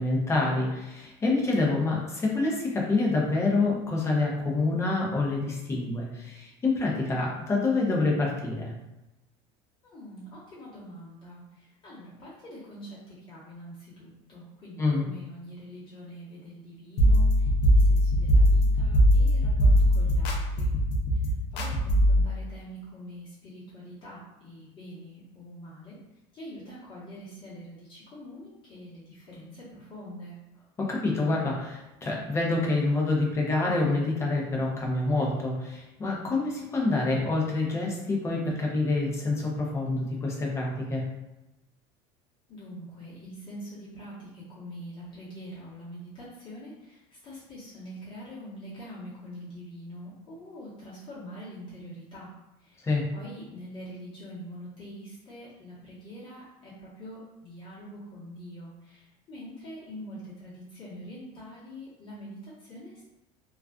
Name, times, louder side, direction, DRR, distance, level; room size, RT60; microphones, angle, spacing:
voice 1, 0.0-8.7 14.8-15.0 30.8-41.0 52.8-53.0, left 3 dB, 20° left, -2 dB, 0.6 m, -27 dB
voice 2, 9.8-20.7 21.2-26.0 26.3-30.3 42.5-52.3 52.6-63.0, equal, 35° left, -10 dB, 1.0 m, -44 dB
sound 1, 17.0-22.2, equal, 80° left, 0.5 m, -21 dB
2.3 x 2.3 x 2.3 m, 0.96 s
cardioid pair, 140°, 14 cm